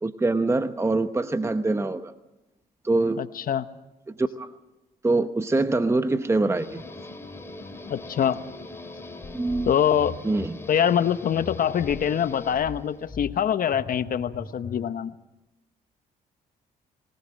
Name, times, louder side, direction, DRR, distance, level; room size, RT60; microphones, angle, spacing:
voice 1, 0.0-2.1 2.8-3.2 4.1-4.5 5.0-6.8 9.3-9.7 10.2-10.6, right 2 dB, 15° right, 10 dB, 0.9 m, -24 dB
voice 2, 3.2-3.7 7.9-8.4 9.7-10.2 10.7-15.1, left 9 dB, 55° left, 12 dB, 1.0 m, -24 dB
Guitar, 6.5-13.1, left 2 dB, 15° left, 2.8 m, -42 dB
sound 1, 6.7-10.5 11.3-14.9, left 4 dB, 35° left, 4.2 m, -42 dB
24.0 x 19.0 x 7.6 m, 0.96 s
cardioid pair, 80°, 17 cm